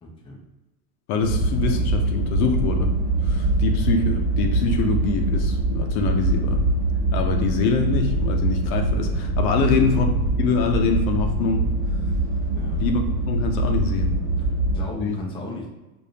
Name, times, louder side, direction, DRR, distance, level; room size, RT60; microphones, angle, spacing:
voice 1, 0.0-0.4 9.6-9.9 12.5-12.8 14.4-15.7, left 1 dB, 10° left, -2 dB, 0.6 m, -36 dB
voice 2, 1.1-2.9 3.2-6.7 7.1-10.1 10.4-11.7 12.8-14.1 15.0-15.2, left 5 dB, 65° left, 4 dB, 0.7 m, -24 dB
sound 1, 1.2-14.8, right 2 dB, 35° right, 1.3 m, -23 dB
4.9 x 2.6 x 2.8 m, 1.1 s
supercardioid pair, 120°, 46 cm